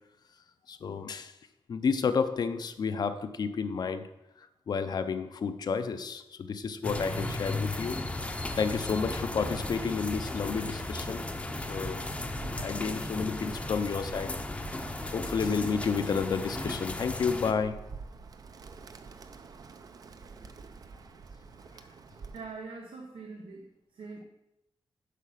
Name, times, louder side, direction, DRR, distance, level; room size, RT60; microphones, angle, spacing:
voice 1, 0.7-1.3 1.7-4.1 4.4-8.0 8.5-11.3 11.7-12.1 12.6-14.4 15.1-17.8, left 5 dB, 50° left, 0.6 m, -31 dB
sound 1, 6.8-17.5, left 2 dB, 15° left, 0.7 m, -35 dB
Bird, 9.5-22.6, right 4 dB, 45° right, 0.6 m, -48 dB
voice 2, 22.3-24.2, right 4 dB, 85° right, 1.2 m, -43 dB
8.4 x 6.7 x 5.7 m
wide cardioid pair, 180°, 9 cm